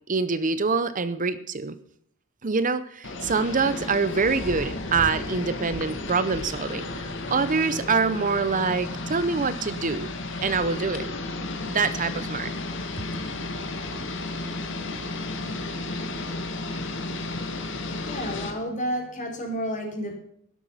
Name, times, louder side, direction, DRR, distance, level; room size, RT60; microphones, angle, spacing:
voice 1, 0.1-1.8 2.4-10.1 10.4-11.1 11.7-12.5, right 4 dB, 40° right, 13 dB, 0.8 m, -25 dB
sound 1, 3.0-18.5, left 2 dB, 65° left, 2.2 m, -33 dB
voice 2, 18.0-20.1, equal, 40° left, 2 dB, 4.6 m, -30 dB
12.5 x 12.0 x 5.7 m, 0.69 s
head